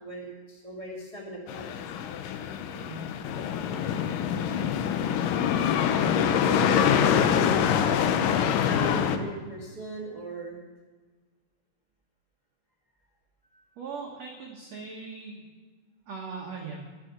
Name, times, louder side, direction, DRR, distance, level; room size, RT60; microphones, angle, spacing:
voice 1, 0.0-1.7 6.4-10.6 13.5-13.6, right 2 dB, 25° right, -3 dB, 0.6 m, -37 dB
sound 1, 1.5-9.2, left 8 dB, 85° left, 1.9 m, -25 dB
voice 2, 13.8-15.4 16.1-16.8, right 4 dB, 70° right, -1 dB, 1.6 m, -39 dB
10.5 x 7.6 x 8.7 m, 1.4 s
omnidirectional pair, 4.8 m